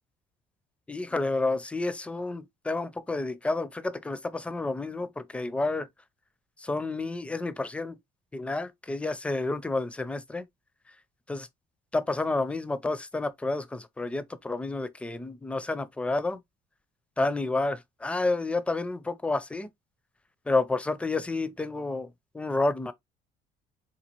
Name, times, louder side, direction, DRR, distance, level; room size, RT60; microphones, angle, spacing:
voice 1, 0.9-5.9 6.6-8.0 8.3-10.4 11.3-11.5 11.9-16.4 17.2-19.7 20.5-22.1 22.3-22.9, left 2 dB, 5° left, 0.4 m, -30 dB
4.1 x 2.2 x 2.9 m
cardioid pair, 110°, 17 cm